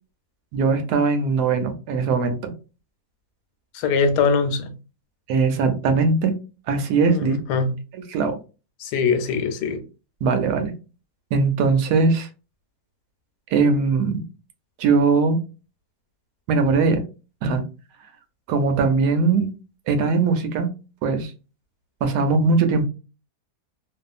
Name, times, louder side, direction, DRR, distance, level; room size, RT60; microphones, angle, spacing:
voice 1, 0.5-2.5 5.3-6.3 6.7-7.4 7.9-8.4 10.2-10.7 11.3-12.3 13.5-14.2 14.8-15.4 16.5-17.0 17.4-17.6 18.5-19.5 19.9-20.7 21.0-21.3 22.0-22.8, right 4 dB, 85° right, 1.2 m, -20 dB
voice 2, 3.7-4.8 7.1-7.8 8.8-9.8, left 5 dB, 90° left, 1.2 m, -22 dB
2.7 x 2.3 x 2.4 m
omnidirectional pair, 1.7 m